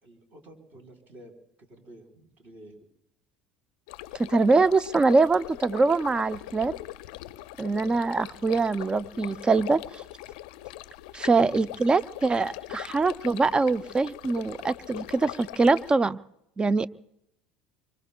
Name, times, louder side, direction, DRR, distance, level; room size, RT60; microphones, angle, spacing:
voice 1, 0.0-2.8 7.6-8.1 11.3-11.6, right 1 dB, 40° right, 2 dB, 4.3 m, -50 dB
sound 1, 3.9-15.9, left 16 dB, 70° left, 0.5 m, -41 dB
voice 2, 4.2-6.7 7.6-10.0 11.1-16.2 16.6-16.9, right 3 dB, 20° right, 17 dB, 0.5 m, -23 dB
25.5 x 24.5 x 2.3 m, 0.80 s
hypercardioid pair, 75°, 4 cm